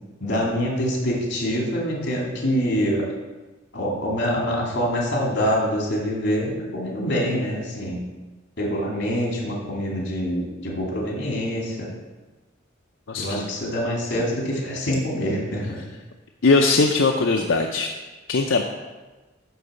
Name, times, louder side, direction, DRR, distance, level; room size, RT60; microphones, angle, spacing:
voice 1, 0.2-3.0 3.7-8.0 8.6-11.9 13.2-15.8, equal, 65° left, -3 dB, 2.8 m, -25 dB
voice 2, 13.1-13.5 16.4-17.9 18.3-18.6, left 3 dB, 85° left, 2 dB, 0.6 m, -20 dB
10.5 x 4.0 x 6.9 m, 1.2 s
head